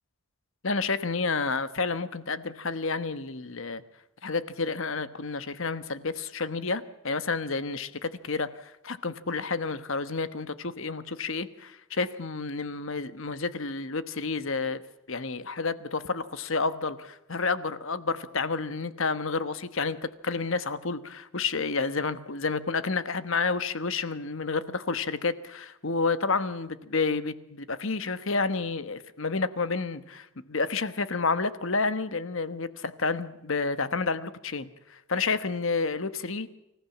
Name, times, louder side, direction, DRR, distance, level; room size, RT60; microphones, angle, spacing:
voice 1, 0.6-3.8 4.2-14.8 15.1-36.5, left 4 dB, 60° left, 1.2 m, -30 dB
26.0 x 15.0 x 7.3 m
head